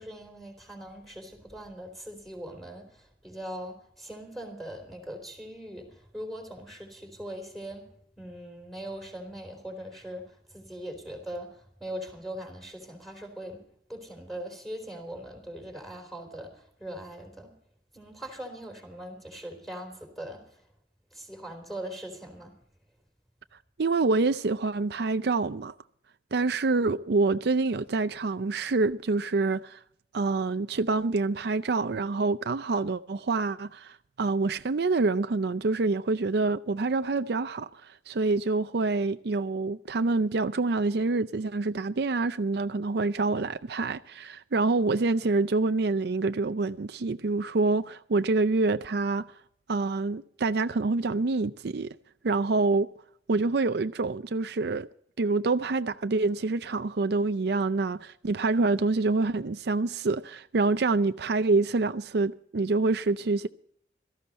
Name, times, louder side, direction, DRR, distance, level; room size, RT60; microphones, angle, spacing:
voice 1, 0.0-13.6 13.9-17.5 17.9-20.7 21.1-22.5, equal, ahead, 4.0 m, -41 dB
voice 2, 23.8-25.7 26.3-29.8 30.1-49.3 49.7-51.9 52.2-52.9 53.3-54.9 55.2-63.5, right 3 dB, 65° right, 0.5 m, -26 dB
17.0 x 14.5 x 4.3 m
head